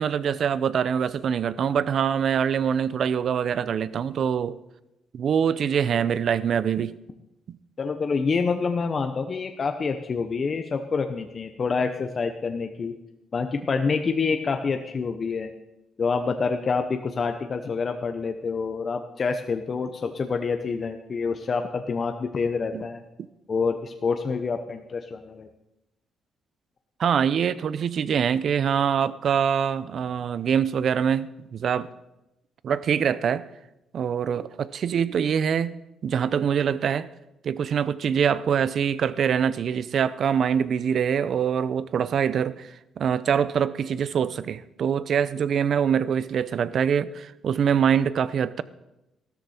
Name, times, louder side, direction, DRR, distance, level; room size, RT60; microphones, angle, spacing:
voice 1, 0.0-4.6 5.1-7.0 7.5-7.6 22.7-22.8 27.0-31.9 32.6-33.4 33.9-35.8 36.0-37.1 37.4-48.6, right 7 dB, 60° right, 0.6 m, -24 dB
voice 2, 7.8-13.0 13.3-15.5 16.0-23.0 23.5-25.5, left 5 dB, 40° left, 0.9 m, -27 dB
14.5 x 13.0 x 4.4 m
cardioid pair, 90°, 0 cm